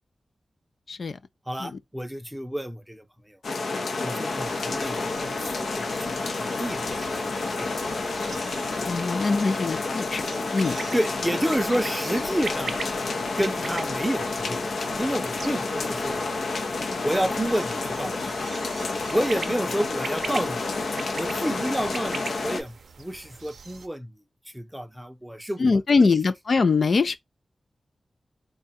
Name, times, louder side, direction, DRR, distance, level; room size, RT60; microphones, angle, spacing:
voice 1, 1.5-3.4 4.0-6.2 6.6-7.2 7.6-7.8 10.9-12.7 13.4-16.2 17.0-18.3 19.1-20.6 21.2-24.1 24.5-26.1, equal, 5° right, 0.5 m, -29 dB
sound 1, 3.4-22.6, left 3 dB, 85° left, 0.7 m, -29 dB
sound 2, 4.3-23.9, right 5 dB, 85° right, 0.5 m, -42 dB
voice 2, 8.8-10.2 10.5-10.8 25.6-27.2, left 4 dB, 60° left, 0.3 m, -22 dB
3.7 x 2.3 x 4.1 m
wide cardioid pair, 105°, 0 cm